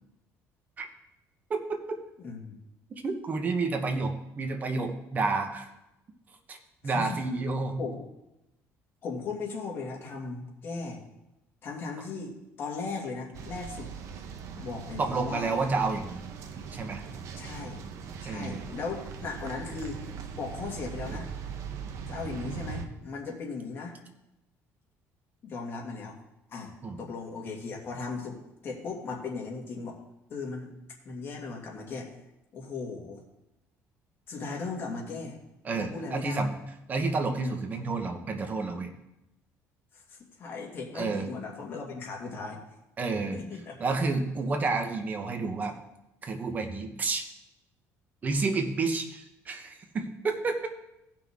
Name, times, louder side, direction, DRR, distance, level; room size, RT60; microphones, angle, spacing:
voice 1, 2.2-2.6 6.8-7.1 7.8-8.0 9.0-11.0 11.6-13.9 14.6-15.5 17.4-17.8 18.2-20.0 20.3-21.3 22.1-24.0 25.4-26.2 26.5-26.7 27.0-28.4 28.6-30.0 30.3-30.7 31.0-32.1 32.5-33.2 34.3-35.4 35.7-36.4 37.4-37.6 39.9-42.6 43.3-43.8, left 4 dB, 40° left, -1 dB, 2.2 m, -37 dB
voice 2, 3.0-5.7 6.5-6.6 6.8-7.8 15.0-16.3 16.7-17.0 18.2-18.6 26.8-27.0 35.6-36.5 36.9-38.9 40.9-41.3 43.0-43.4 43.8-45.7 46.2-47.3 48.2-50.7, right 3 dB, 30° right, 5 dB, 1.1 m, -30 dB
sound 1, 13.3-22.9, right 6 dB, 65° right, 1.0 m, -40 dB
16.5 x 5.9 x 3.7 m, 0.91 s
cardioid pair, 140°, 6 cm